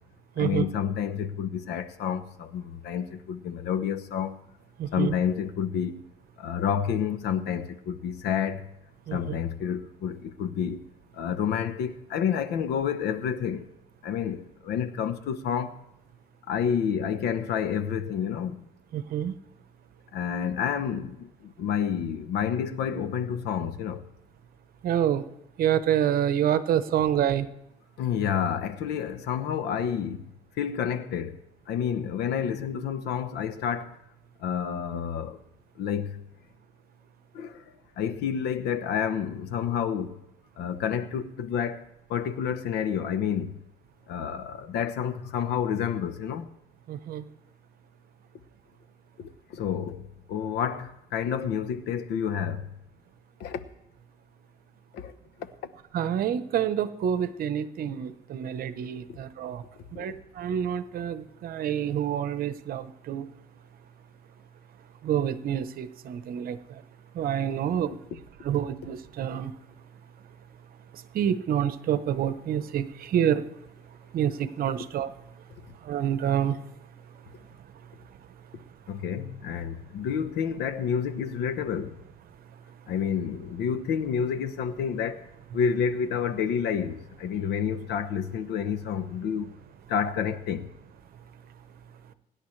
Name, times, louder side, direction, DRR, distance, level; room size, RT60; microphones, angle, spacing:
voice 1, 0.4-4.4 4.9-6.0 6.4-8.7 9.1-10.8 11.1-13.7 14.0-15.8 16.5-18.7 20.1-24.1 28.0-30.3 30.6-31.4 31.7-34.0 34.4-35.4 35.8-36.2 37.3-37.6 38.0-40.2 40.6-41.8 42.1-43.6 44.1-46.5 49.2-52.7 53.4-53.6 54.9-55.1 55.4-55.5 59.9-60.1 78.9-82.0 82.9-85.3 85.5-89.5 89.9-90.7, left 8 dB, 80° left, 1.0 m, -29 dB
voice 2, 4.8-5.1 9.1-9.4 18.9-19.3 24.8-25.2 25.6-27.5 46.9-47.2 55.9-59.6 60.0-63.2 65.0-66.6 67.2-67.9 68.4-69.5 71.1-72.8 73.1-73.4 74.1-75.1 75.9-76.5, right 9 dB, 60° right, 1.0 m, -27 dB
25.5 x 10.5 x 3.3 m
cardioid pair, 110°, 17 cm